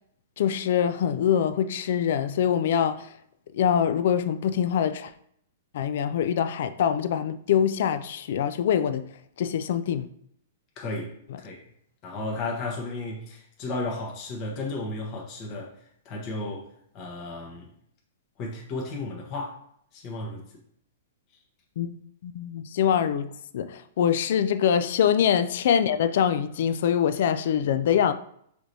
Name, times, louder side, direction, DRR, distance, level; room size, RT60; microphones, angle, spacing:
voice 1, 0.4-3.1 3.5-5.1 5.7-9.1 9.4-10.1 11.3-11.4 21.8-28.1, left 8 dB, 65° left, 0.3 m, -24 dB
voice 2, 10.8-11.1 11.4-11.6 12.0-15.7 16.0-16.7 16.9-17.7 18.4-19.6 19.9-20.4, left 2 dB, 35° left, 1.1 m, -33 dB
4.8 x 3.0 x 2.7 m
hypercardioid pair, 135°, 0 cm